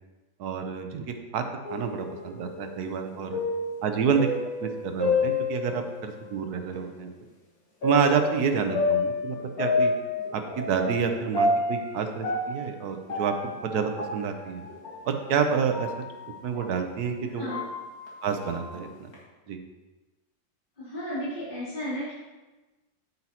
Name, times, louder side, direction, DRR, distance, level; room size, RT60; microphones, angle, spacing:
voice 1, 0.4-1.4 1.7-3.4 3.8-4.3 4.6-7.1 7.8-9.9 10.3-14.6 15.0-15.9 16.4-17.5 18.2-19.1 19.5-19.6, right 6 dB, 70° right, 6 dB, 1.2 m, -28 dB
sound 1, 1.6-6.3 6.7-6.8 7.8-16.9 17.3-19.1, left 2 dB, 55° left, 2.2 m, -30 dB
voice 2, 20.8-22.1, equal, 30° left, -11 dB, 3.0 m, -33 dB
8.2 x 7.9 x 2.9 m, 1.2 s
omnidirectional pair, 1.9 m